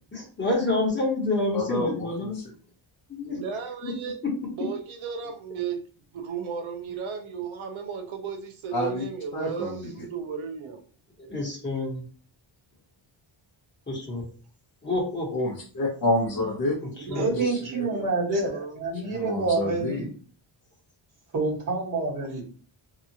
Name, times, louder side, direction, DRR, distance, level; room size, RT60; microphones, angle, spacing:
voice 1, 0.1-2.4 3.1-3.4 3.8-3.9 11.3-12.1 13.9-14.3 14.8-15.3 17.0-17.4, left 2 dB, 20° left, 1.1 m, -28 dB
voice 2, 1.5-2.3 8.7-9.0 9.3-9.8 15.3-16.8 17.4-17.8 19.0-20.1, left 1 dB, 45° left, 0.8 m, -28 dB
voice 3, 3.3-4.2 4.6-5.9 6.1-10.8 16.9-18.8, right 6 dB, 75° right, 0.7 m, -35 dB
voice 4, 17.1-20.1 21.3-22.4, right 3 dB, 40° right, 1.3 m, -27 dB
2.8 x 2.3 x 2.7 m
wide cardioid pair, 130°, 48 cm